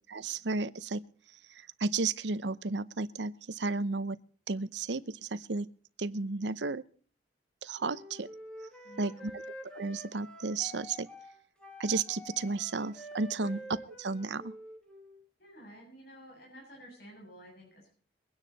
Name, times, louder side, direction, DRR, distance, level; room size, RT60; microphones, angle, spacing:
voice 1, 0.1-1.0 1.5-4.2 4.5-5.7 6.0-6.8 7.6-8.3 9.0-9.4 9.7-11.1 11.8-13.6 14.0-14.5, right 3 dB, 80° right, 16 dB, 0.8 m, -33 dB
Wind instrument woodwind instrument, 7.8-15.2, equal, 5° left, 2.2 m, -48 dB
voice 2, 8.8-9.4 13.4-13.6 15.4-17.9, equal, 55° left, -2 dB, 7.2 m, -51 dB
23.5 x 9.8 x 4.1 m, 0.43 s
head